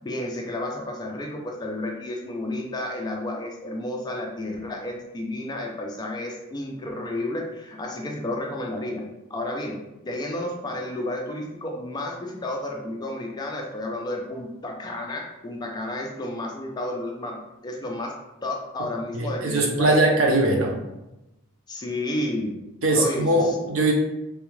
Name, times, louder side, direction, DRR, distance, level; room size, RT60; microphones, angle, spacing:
voice 1, 0.0-9.0 9.3-20.0 21.7-22.6 22.9-23.6, left 1 dB, 20° left, 1 dB, 0.4 m, -31 dB
voice 2, 19.1-20.8 22.8-23.9, right 2 dB, 65° right, 0 dB, 0.7 m, -21 dB
3.4 x 2.3 x 3.1 m, 0.93 s
head